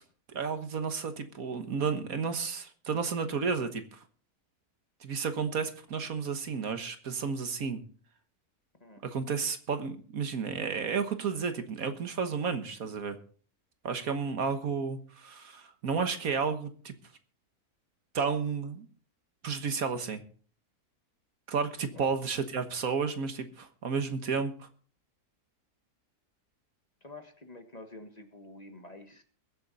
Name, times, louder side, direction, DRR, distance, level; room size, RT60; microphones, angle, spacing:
voice 1, 0.3-4.0 5.0-7.8 9.0-13.2 13.8-16.9 18.1-18.9 19.4-20.2 21.5-24.7, right 5 dB, 65° right, 8 dB, 1.7 m, -32 dB
voice 2, 27.0-29.2, left 2 dB, 25° left, 5 dB, 1.5 m, -48 dB
22.5 x 7.6 x 4.1 m, 0.43 s
omnidirectional pair, 1.6 m